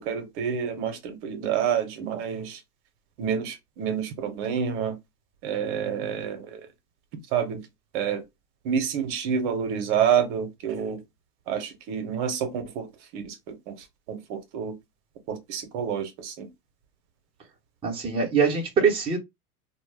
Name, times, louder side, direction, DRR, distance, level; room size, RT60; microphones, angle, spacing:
voice 1, 0.0-2.6 3.2-5.0 5.4-6.6 7.3-7.6 7.9-8.2 8.6-11.0 11.5-12.9 13.1-14.8 15.3-16.5, right 8 dB, 50° right, 0.8 m, -28 dB
voice 2, 17.8-19.2, right 5 dB, 10° right, 0.6 m, -23 dB
2.1 x 2.1 x 3.2 m
hypercardioid pair, 105°, 46 cm